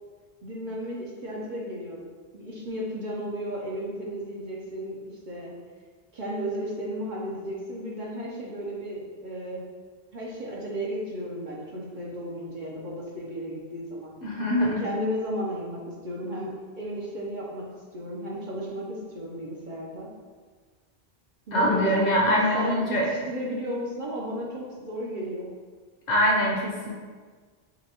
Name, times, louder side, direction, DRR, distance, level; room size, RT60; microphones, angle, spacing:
voice 1, 0.4-2.0 2.3-5.0 5.3-5.6 6.1-9.6 10.1-14.1 14.6-17.6 17.9-20.1 21.5-25.5, equal, 55° right, -5 dB, 0.8 m, -34 dB
voice 2, 14.2-14.8 21.5-23.1 26.1-26.9, equal, 45° left, -3 dB, 0.9 m, -23 dB
6.6 x 2.2 x 2.8 m, 1.5 s
omnidirectional pair, 1.0 m